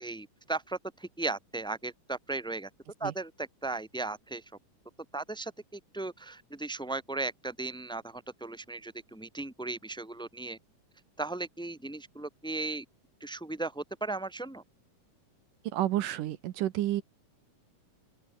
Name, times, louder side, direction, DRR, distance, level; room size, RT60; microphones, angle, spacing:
voice 1, 0.0-2.7 3.0-4.4 5.1-10.6 11.2-12.8 13.2-14.6, right 3 dB, ahead, 2.6 m, -36 dB
voice 2, 15.6-17.0, right 13 dB, 75° right, 2.6 m, -30 dB
open air
omnidirectional pair, 3.9 m